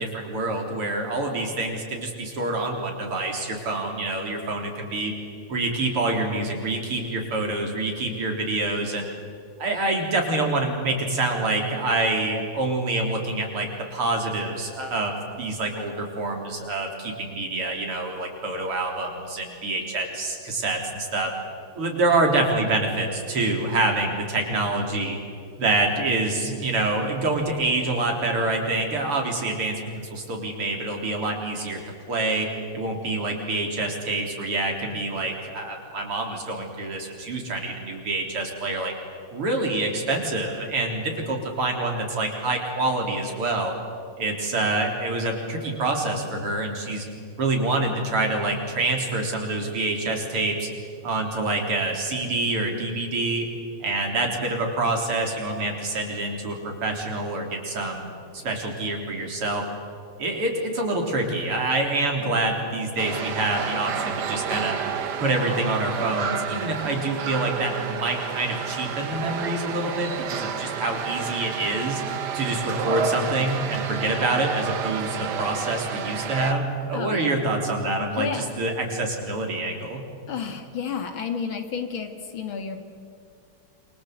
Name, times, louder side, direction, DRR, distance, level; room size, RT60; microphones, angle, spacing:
voice 1, 0.0-5.1 5.5-9.1 9.6-21.3 21.8-25.2 25.6-31.8 32.1-32.5 32.7-38.9 39.3-43.7 44.2-47.1 47.4-50.7 51.0-53.5 53.8-59.6 60.2-64.8 65.2-72.0 72.3-80.1, right 2 dB, 85° right, 2 dB, 4.8 m, -26 dB
sound 1, 63.0-76.5, right 7 dB, 55° right, 1.6 m, -30 dB
voice 2, 76.9-77.4 78.0-78.5 80.3-82.8, left 6 dB, 65° left, 6 dB, 2.8 m, -31 dB
28.0 x 25.0 x 8.2 m, 2.3 s
omnidirectional pair, 2.4 m